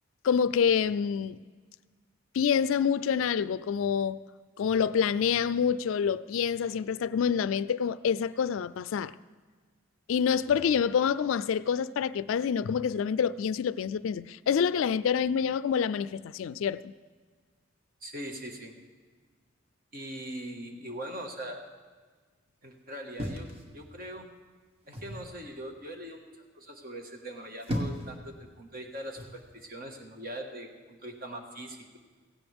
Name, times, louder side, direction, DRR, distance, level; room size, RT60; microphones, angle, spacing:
voice 1, 0.2-1.4 2.3-4.2 4.6-9.1 10.1-16.9, left 7 dB, 70° left, 0.3 m, -27 dB
voice 2, 18.0-18.7 19.9-21.6 22.6-24.3 24.9-32.0, right 1 dB, 45° right, 1.6 m, -41 dB
sound 1, 23.2-24.2 24.9-25.3 27.3-28.2 29.2-29.4, equal, 30° right, 1.5 m, -36 dB
17.0 x 16.0 x 3.5 m
head